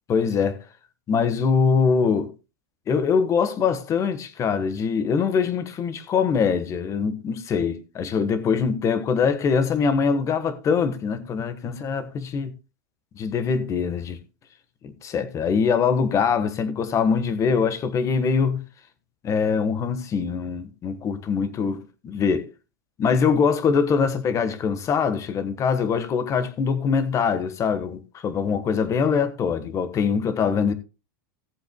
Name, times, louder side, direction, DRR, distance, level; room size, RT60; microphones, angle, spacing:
voice 1, 0.1-0.6 1.1-2.3 2.9-12.5 13.1-14.2 14.8-18.6 19.2-22.5 23.0-30.7, left 6 dB, 25° left, 1.3 m, -23 dB
17.5 x 7.7 x 2.2 m
supercardioid pair, 145°, 12 cm